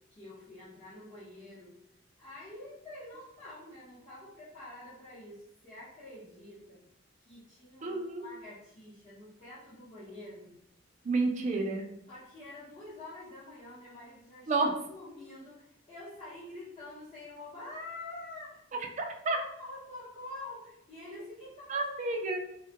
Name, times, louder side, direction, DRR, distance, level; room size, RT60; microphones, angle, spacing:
voice 1, 0.1-1.8 2.2-6.8 7.2-10.5 12.1-18.6 19.0-21.9, left 2 dB, 25° left, -13 dB, 0.8 m, -47 dB
voice 2, 7.8-8.2 11.0-11.9 14.5-14.7 19.0-19.4 21.7-22.4, right 3 dB, 35° right, 3 dB, 0.3 m, -30 dB
2.2 x 2.1 x 2.8 m, 0.80 s
head